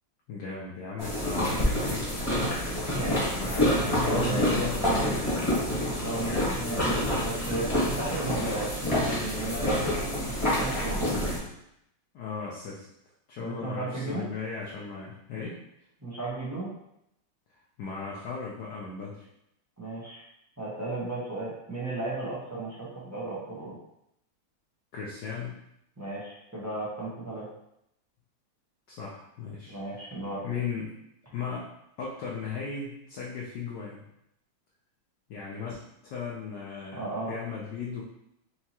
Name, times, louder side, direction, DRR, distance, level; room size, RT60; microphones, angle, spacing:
voice 1, 0.3-2.1 3.4-5.5 6.2-6.7 12.1-12.9 13.3-15.6 17.8-19.2 24.9-25.5 28.9-29.8 30.4-30.9 31.3-31.7 32.0-34.0 35.3-38.0, left 5 dB, 70° left, -4 dB, 1.1 m, -36 dB
sound 1, 1.0-11.4, left 1 dB, 20° left, 1.0 m, -27 dB
voice 2, 2.9-4.7 5.8-6.8 7.2-8.7 9.2-11.3 13.4-14.3 16.0-16.7 19.8-20.2 20.6-23.8 26.0-27.5 29.7-30.4 36.9-37.3, right 2 dB, 25° right, -8 dB, 0.3 m, -35 dB
4.5 x 2.9 x 2.9 m, 0.79 s
omnidirectional pair, 2.2 m